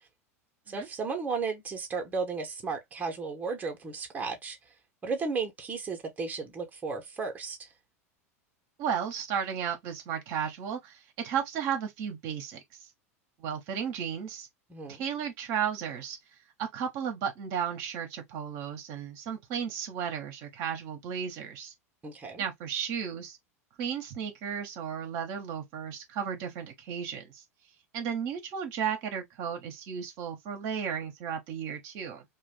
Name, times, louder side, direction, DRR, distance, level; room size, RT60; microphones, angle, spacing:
voice 1, 0.7-4.6 5.0-7.7 14.7-15.0 22.0-22.4, right 4 dB, 20° right, 0.9 m, -34 dB
voice 2, 8.8-12.6 13.4-14.5 14.9-16.2 16.6-21.7 22.4-23.4 23.8-27.4 27.9-32.2, right 8 dB, 50° right, 0.8 m, -34 dB
2.5 x 2.2 x 3.2 m
figure-of-eight pair, 85°, 8 cm